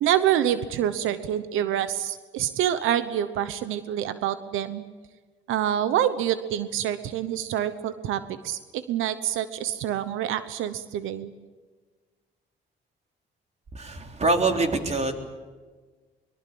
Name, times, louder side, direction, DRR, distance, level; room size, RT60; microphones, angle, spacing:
voice 1, 0.0-4.8 5.5-11.3, right 11 dB, 90° right, 12 dB, 1.0 m, -26 dB
voice 2, 13.7-15.1, right 3 dB, 35° right, 4 dB, 3.7 m, -24 dB
23.0 x 22.5 x 8.6 m, 1.4 s
cardioid pair, 90°, 20 cm